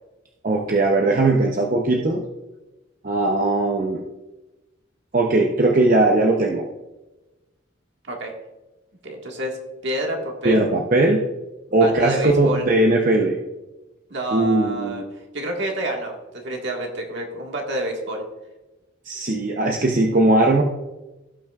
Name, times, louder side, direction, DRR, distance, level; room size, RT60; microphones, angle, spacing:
voice 1, 0.4-2.2 3.0-4.0 5.1-6.6 10.4-11.3 11.7-13.4 14.3-15.0 19.0-20.6, right 2 dB, 45° right, 1 dB, 0.7 m, -19 dB
voice 2, 9.0-9.6 9.8-10.7 11.7-12.7 14.1-15.0 15.3-18.2, right 1 dB, 60° right, 1 dB, 1.7 m, -28 dB
16.5 x 6.0 x 2.4 m, 1.1 s
head